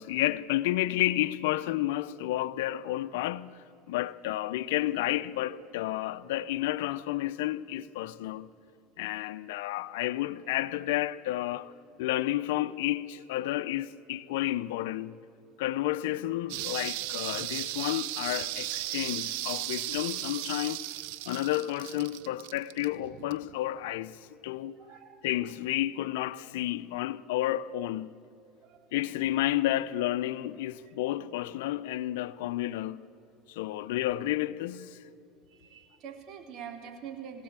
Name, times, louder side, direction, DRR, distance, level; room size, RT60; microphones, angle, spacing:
voice 1, 0.0-3.6 3.9-8.5 9.0-11.7 12.0-15.2 15.6-20.8 21.3-24.7 25.2-28.1 28.9-33.0 33.5-35.0, left 15 dB, 80° left, 0.7 m, -31 dB
sound 1, 16.5-23.5 23.9-24.0, right 16 dB, 75° right, 0.8 m, -36 dB
voice 2, 24.8-25.2 28.6-28.8 35.6-37.4, right 8 dB, 55° right, 3.4 m, -44 dB
21.0 x 16.5 x 8.9 m
supercardioid pair, 100°, 0 cm